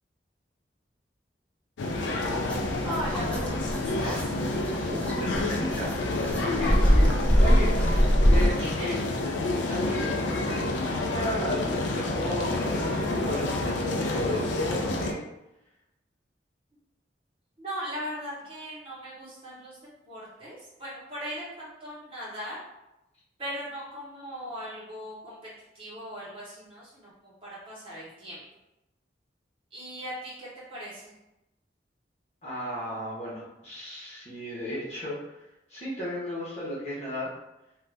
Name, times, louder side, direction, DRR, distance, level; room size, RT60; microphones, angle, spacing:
sound 1, 1.8-15.1, left 2 dB, 90° left, 0.4 m, -29 dB
sound 2, 2.2-8.5, equal, 5° left, 0.3 m, -24 dB
voice 1, 2.8-4.3 8.6-8.9 17.6-19.8 20.0-22.6 23.4-25.4 25.7-28.4 29.7-31.1, equal, 30° right, -8 dB, 1.2 m, -38 dB
voice 2, 4.8-7.7 8.3-9.0 9.7-10.1 10.5-15.2 32.4-35.2 35.7-37.3, left 1 dB, 35° left, -7 dB, 1.0 m, -34 dB
2.6 x 2.4 x 3.3 m, 0.91 s
head